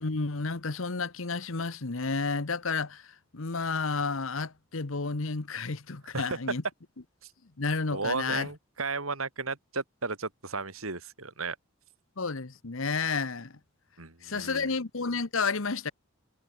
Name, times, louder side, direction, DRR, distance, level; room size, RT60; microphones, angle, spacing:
voice 1, 0.0-6.6 7.6-8.5 12.2-13.6 14.2-15.9, left 4 dB, 75° left, 1.2 m, -31 dB
voice 2, 7.9-11.6 14.0-14.7, right 4 dB, 90° right, 3.3 m, -34 dB
head